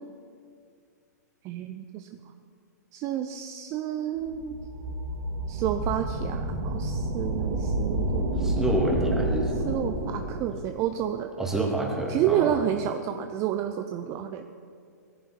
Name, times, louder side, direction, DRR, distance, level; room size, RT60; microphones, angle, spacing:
voice 1, 1.4-2.1 2.9-4.6 5.5-8.4 9.7-11.3 12.1-14.4, right 10 dB, 30° right, 7 dB, 0.7 m, -30 dB
sound 1, 4.2-10.7, right 1 dB, 70° right, 4.0 m, -29 dB
voice 2, 8.2-9.7 11.4-12.6, right 1 dB, 5° right, -2 dB, 2.8 m, -28 dB
17.5 x 15.0 x 4.6 m, 2.3 s
hypercardioid pair, 130°, 9 cm